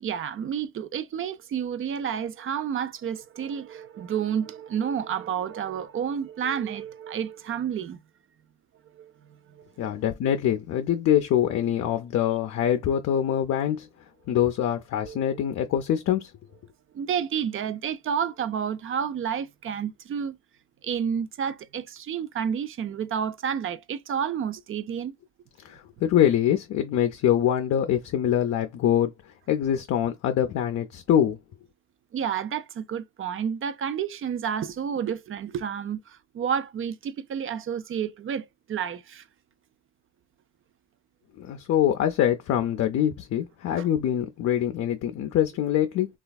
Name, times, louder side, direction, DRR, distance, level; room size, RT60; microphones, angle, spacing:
voice 1, 0.0-8.0 8.9-9.1 9.5-9.7 15.0-15.4 16.9-20.4 20.8-25.1 32.1-39.2 43.8-43.9, right 8 dB, 45° right, 0.5 m, -30 dB
voice 2, 9.8-13.9 14.3-16.3 25.6-29.1 29.5-31.4 41.4-46.1, left 10 dB, 60° left, 0.5 m, -24 dB
3.2 x 2.4 x 2.2 m
cardioid pair, 90°, 30 cm